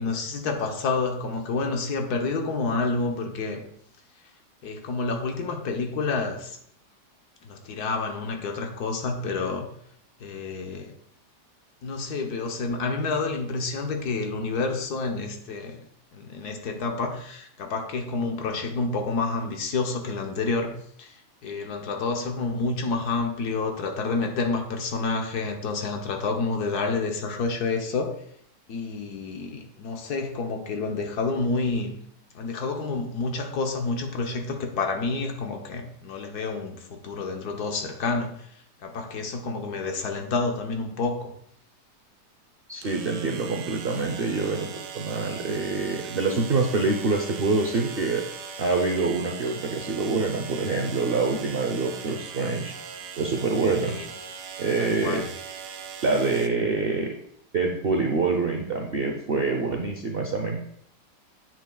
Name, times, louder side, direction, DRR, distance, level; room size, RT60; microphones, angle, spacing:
voice 1, 0.0-3.6 4.6-6.6 7.4-9.7 10.2-10.9 11.8-15.8 16.1-20.7 21.0-28.2 28.7-32.0 32.3-41.3 53.8-54.1 54.8-55.3, left 3 dB, 70° left, 4 dB, 1.4 m, -29 dB
sound 1, 40.8-40.9 42.8-56.5, right 7 dB, 90° right, 1.4 m, -40 dB
voice 2, 42.7-48.2 48.6-52.7 53.2-54.0 54.6-55.2 56.0-57.1 57.5-60.7, right 3 dB, 55° right, 2 dB, 0.6 m, -26 dB
9.7 x 7.5 x 2.3 m, 0.68 s
omnidirectional pair, 1.8 m